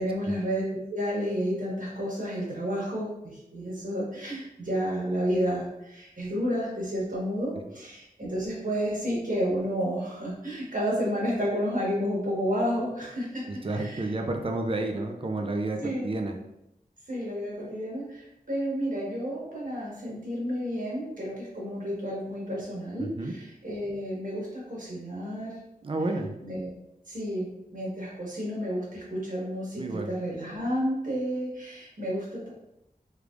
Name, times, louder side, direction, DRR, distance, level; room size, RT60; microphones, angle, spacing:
voice 1, 0.0-13.4 13.7-14.1 15.8-16.1 17.1-25.5 26.4-26.7 27.1-32.5, equal, 55° right, -5 dB, 1.4 m, -31 dB
voice 2, 13.4-16.4 23.0-23.3 25.8-26.3 29.8-30.1, right 2 dB, 35° right, 3 dB, 0.5 m, -31 dB
3.3 x 3.3 x 2.5 m, 0.85 s
wide cardioid pair, 65°, 16 cm